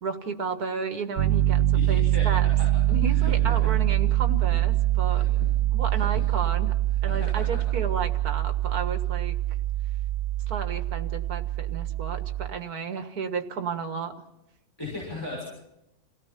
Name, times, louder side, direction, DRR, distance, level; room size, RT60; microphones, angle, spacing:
voice 1, 0.0-2.5 2.9-5.2 5.7-6.8 7.0-9.4 10.5-14.1, right 5 dB, 80° right, 8 dB, 2.0 m, -33 dB
Piano, 1.2-12.5, right 13 dB, 55° right, 1.3 m, -24 dB
voice 2, 1.7-2.7 3.1-3.7 5.1-5.5 5.9-6.3 7.1-7.4 14.8-15.4, left 2 dB, 15° left, -5 dB, 6.6 m, -37 dB
28.5 x 17.5 x 5.9 m, 0.87 s
omnidirectional pair, 1.6 m